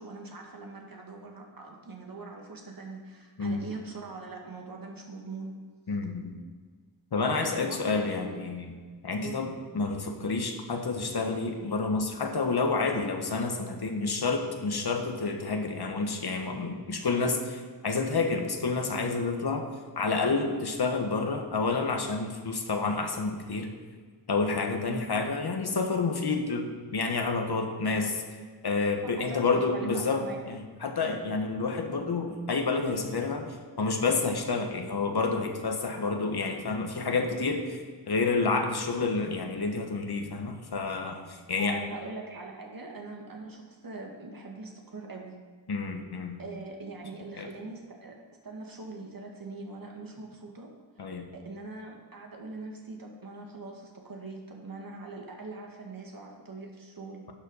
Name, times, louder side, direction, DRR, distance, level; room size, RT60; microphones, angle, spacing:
voice 1, 0.0-5.5 7.3-8.4 9.2-9.5 24.9-25.2 29.2-30.4 41.6-45.4 46.4-48.2 48.4-50.7 51.3-57.3, right 3 dB, 55° right, 1 dB, 2.0 m, -42 dB
voice 2, 5.9-6.3 7.1-8.7 9.0-19.7 20.0-23.7 24.3-28.2 28.6-41.8 45.7-46.4 47.4-47.5 51.0-51.3, left 4 dB, 65° left, 4 dB, 1.4 m, -29 dB
12.0 x 7.6 x 5.6 m, 1.5 s
wide cardioid pair, 95°, 42 cm